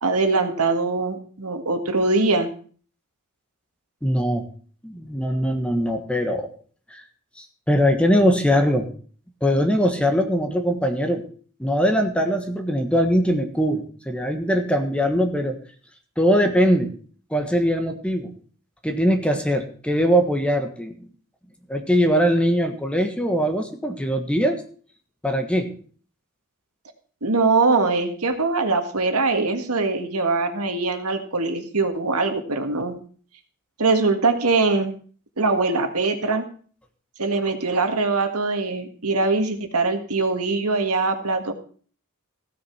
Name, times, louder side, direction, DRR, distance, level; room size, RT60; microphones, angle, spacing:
voice 1, 0.0-2.5 27.2-32.9 33.8-34.9 35.4-36.4 37.2-41.5, right 3 dB, 80° right, 7 dB, 1.7 m, -22 dB
voice 2, 4.0-4.5 4.8-6.5 6.9-7.0 7.4-8.9 9.4-11.2 11.6-15.6 16.2-17.0 17.3-18.3 18.8-20.9 21.7-24.6 25.2-25.8, equal, 5° left, 5 dB, 1.4 m, -21 dB
15.5 x 6.7 x 5.8 m, 0.43 s
head